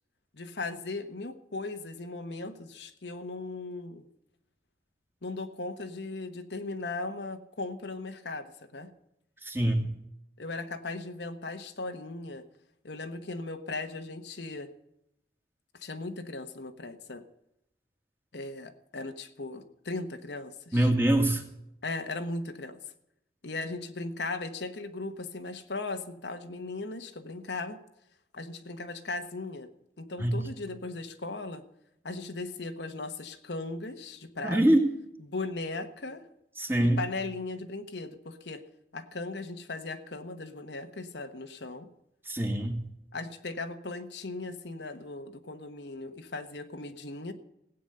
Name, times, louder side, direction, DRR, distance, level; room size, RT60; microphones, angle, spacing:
voice 1, 0.3-4.0 5.2-8.9 10.4-12.4 12.8-14.7 15.8-17.2 18.3-20.9 21.8-22.8 23.4-27.8 28.3-29.7 30.0-31.6 32.0-34.7 35.2-36.2 36.8-38.6 38.9-41.9 43.1-47.3, left 3 dB, 75° left, 7 dB, 1.2 m, -38 dB
voice 2, 9.4-9.9 20.7-21.4 30.2-30.3 34.4-34.9 36.6-37.0 42.3-42.8, right 1 dB, 15° right, 3 dB, 1.9 m, -24 dB
16.5 x 9.1 x 6.7 m, 0.82 s
head